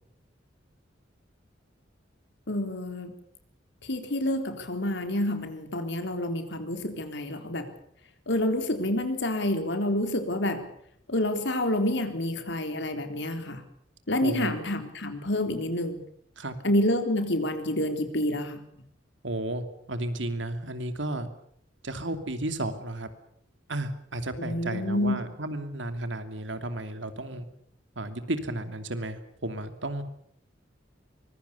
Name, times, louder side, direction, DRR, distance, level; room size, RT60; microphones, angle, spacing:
voice 1, 2.5-3.1 3.8-7.7 8.3-10.7 11.1-13.6 14.1-16.0 16.6-18.6 24.4-25.2, left 1 dB, 65° left, 7 dB, 3.8 m, -28 dB
voice 2, 14.2-14.5 16.4-16.5 19.2-21.3 21.8-23.1 23.7-27.5 28.0-30.0, right 1 dB, 70° right, 9 dB, 2.8 m, -33 dB
24.5 x 22.0 x 7.0 m, 0.66 s
head